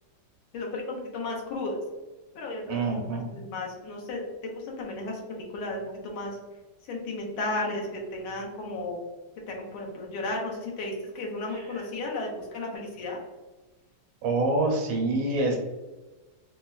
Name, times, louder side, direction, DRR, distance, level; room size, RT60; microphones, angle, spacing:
voice 1, 0.5-1.8 2.3-4.3 4.5-6.4 6.9-9.0 9.5-13.2, left 2 dB, 75° left, -1 dB, 1.5 m, -34 dB
voice 2, 2.7-3.2 11.5-11.9 14.2-15.6, right 2 dB, 75° right, 1 dB, 1.4 m, -26 dB
4.1 x 2.1 x 2.3 m, 1.2 s
omnidirectional pair, 2.4 m